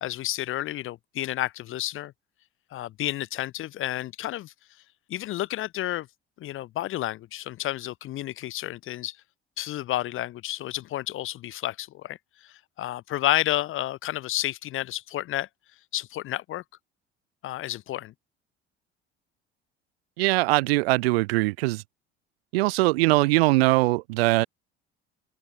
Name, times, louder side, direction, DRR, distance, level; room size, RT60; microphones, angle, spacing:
voice 1, 0.0-2.1 2.7-4.5 5.1-6.1 6.4-9.2 9.6-15.5 15.9-16.6 17.4-18.1, left 14 dB, 40° left, 0.6 m, -31 dB
voice 2, 20.2-21.8 22.5-24.5, right 21 dB, 70° right, 0.7 m, -21 dB
figure-of-eight pair, 55°, 32 cm